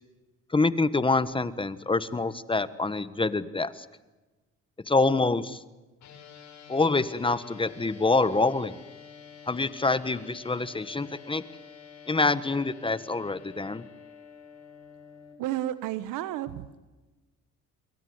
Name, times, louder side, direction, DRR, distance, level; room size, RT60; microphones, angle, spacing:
voice 1, 0.5-3.8 4.9-5.6 6.7-8.8 9.5-11.4 12.1-13.8, left 3 dB, 15° left, 14 dB, 1.3 m, -26 dB
sound 1, 6.0-15.3, left 7 dB, 65° left, 6.7 m, -49 dB
voice 2, 15.4-16.8, right 13 dB, 85° right, 13 dB, 1.3 m, -32 dB
27.5 x 23.0 x 8.0 m, 1.2 s
cardioid pair, 100°, 31 cm